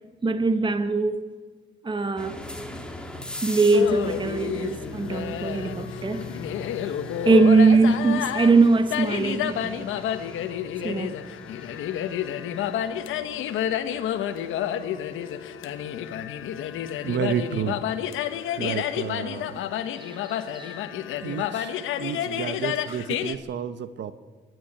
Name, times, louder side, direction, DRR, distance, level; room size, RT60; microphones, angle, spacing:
voice 1, 0.2-1.2 1.8-2.4 3.4-6.2 7.2-9.9 10.8-11.1 19.9-20.8, right 3 dB, 25° right, 1.3 m, -21 dB
sound 1, 2.2-18.9, left 1 dB, 5° left, 3.1 m, -42 dB
sound 2, 3.7-23.4, left 10 dB, 85° left, 1.3 m, -30 dB
voice 2, 17.0-17.8 18.6-19.5 21.2-24.1, right 8 dB, 65° right, 1.0 m, -31 dB
24.5 x 11.0 x 9.8 m
cardioid pair, 90°, 20 cm